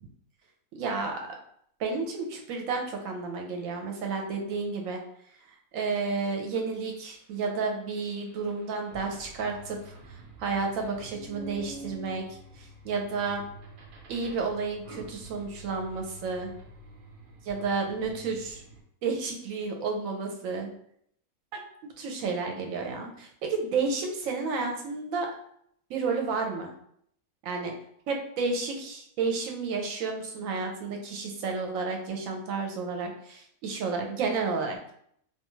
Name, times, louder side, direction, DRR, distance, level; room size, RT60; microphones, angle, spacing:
voice 1, 0.7-1.2 1.8-5.0 5.7-12.3 12.6-13.4 14.1-16.5 17.5-18.6 19.0-20.7 21.8-25.3 25.9-26.7 27.4-27.7 28.1-34.9, right 4 dB, 70° right, 2 dB, 0.9 m, -31 dB
sound 1, 6.2-18.8, right 2 dB, 90° right, 0.4 m, -48 dB
2.5 x 2.3 x 3.0 m, 0.68 s
omnidirectional pair, 1.5 m